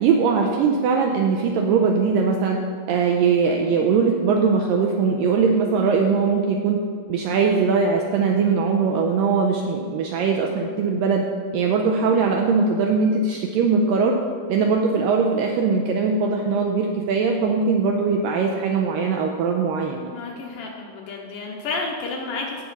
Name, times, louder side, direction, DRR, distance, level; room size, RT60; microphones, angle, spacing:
voice 1, 0.0-2.6 2.9-6.8 7.1-11.2 11.5-14.2 14.5-20.1, right 5 dB, 85° right, 1 dB, 2.0 m, -21 dB
voice 2, 20.1-22.6, left 3 dB, 75° left, -1 dB, 2.2 m, -31 dB
16.0 x 5.9 x 4.2 m, 2.2 s
omnidirectional pair, 4.6 m